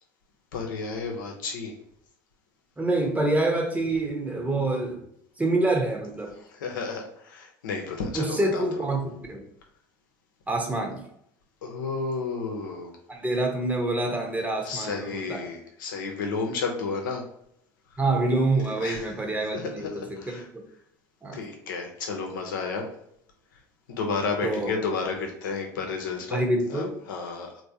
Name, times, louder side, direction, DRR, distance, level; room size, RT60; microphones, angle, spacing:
voice 1, 0.5-1.7 6.4-8.9 11.6-12.9 14.6-17.2 17.9-18.0 18.8-19.1 19.5-20.5 21.3-22.9 23.9-26.4 26.7-27.6, left 4 dB, 85° left, 2 dB, 0.8 m, -32 dB
voice 2, 2.8-5.0 5.4-6.4 8.1-9.4 10.5-11.0 13.1-15.5 18.0-20.6 21.2-21.4 24.4-24.7 26.3-26.9, right 2 dB, 15° right, 2 dB, 0.9 m, -26 dB
3.4 x 2.7 x 2.8 m, 0.73 s
hypercardioid pair, 80°, 10 cm